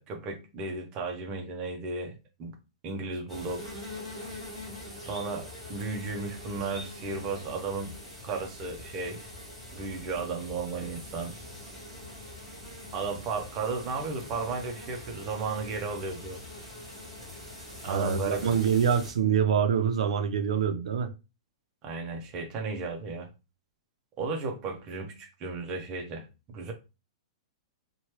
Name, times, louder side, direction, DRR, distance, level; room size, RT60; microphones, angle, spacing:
voice 1, 0.0-2.5 2.8-3.8 5.0-8.0 8.2-9.3 9.7-11.4 12.9-16.4 17.8-18.6 21.8-23.3 24.2-26.7, right 4 dB, 25° right, 0.6 m, -34 dB
sound 1, 3.3-19.1, left 1 dB, 5° left, 1.2 m, -44 dB
voice 2, 17.9-21.1, right 7 dB, 85° right, 0.5 m, -25 dB
2.9 x 2.2 x 3.0 m
hypercardioid pair, 155°, 3 cm